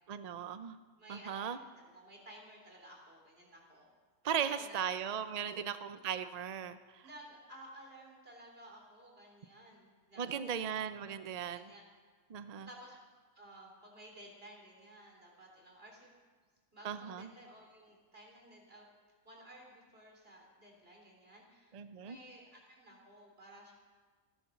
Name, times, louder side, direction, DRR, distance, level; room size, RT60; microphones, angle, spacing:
voice 1, 0.1-0.8 1.1-1.6 4.2-7.0 10.2-11.7 12.3-12.7 16.8-17.3 21.7-22.2, right 8 dB, 60° right, 11 dB, 0.4 m, -37 dB
voice 2, 1.0-3.9 4.2-4.8 5.4-5.5 7.0-10.6 11.5-11.8 12.6-13.0 13.4-16.1 16.7-18.9 19.2-21.7 22.0-23.7, right 1 dB, 40° right, 0 dB, 3.6 m, -55 dB
15.0 x 12.5 x 7.1 m, 1.5 s
omnidirectional pair, 1.5 m